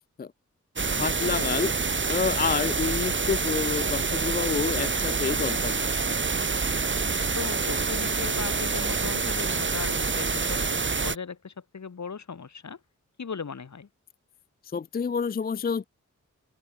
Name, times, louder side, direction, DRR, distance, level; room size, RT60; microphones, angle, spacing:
sound 1, 0.8-11.2, right 4 dB, 40° right, 1.3 m, -27 dB
voice 1, 0.9-1.7 2.1-5.7 14.7-15.9, left 5 dB, 30° left, 0.4 m, -28 dB
voice 2, 7.4-12.8 13.2-13.9, left 5 dB, 65° left, 2.3 m, -38 dB
wide cardioid pair, 75°, 31 cm